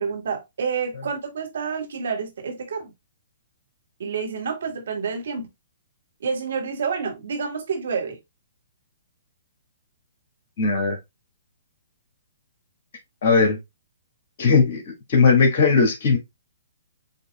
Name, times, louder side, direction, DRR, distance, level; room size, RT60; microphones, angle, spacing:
voice 1, 0.0-2.9 4.0-5.5 6.2-8.2, right 5 dB, 70° right, 1.7 m, -28 dB
voice 2, 10.6-11.0 13.2-13.6 14.4-16.2, left 4 dB, 50° left, 2.0 m, -18 dB
7.9 x 2.8 x 2.3 m
hypercardioid pair, 130°, 0 cm